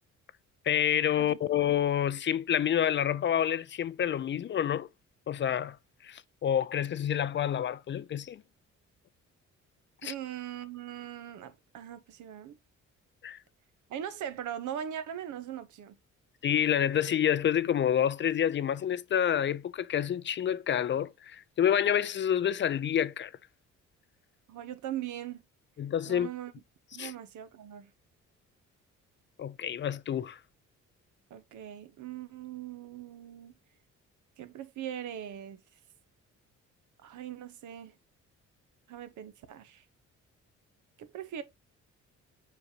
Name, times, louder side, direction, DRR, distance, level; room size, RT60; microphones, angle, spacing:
voice 1, 0.6-4.9 5.3-5.8 6.0-8.4 10.0-10.1 13.2-13.4 16.4-23.3 25.8-26.3 27.0-27.1 29.4-30.4, left 9 dB, 40° left, 0.4 m, -28 dB
voice 2, 10.0-12.6 13.9-15.9 24.5-25.4 26.1-26.5 26.9-27.9 31.3-33.5 34.4-35.6 37.0-38.0 38.9-39.8 41.0-41.4, right 10 dB, 75° right, 0.9 m, -40 dB
6.9 x 5.2 x 2.7 m
cardioid pair, 90°, 30 cm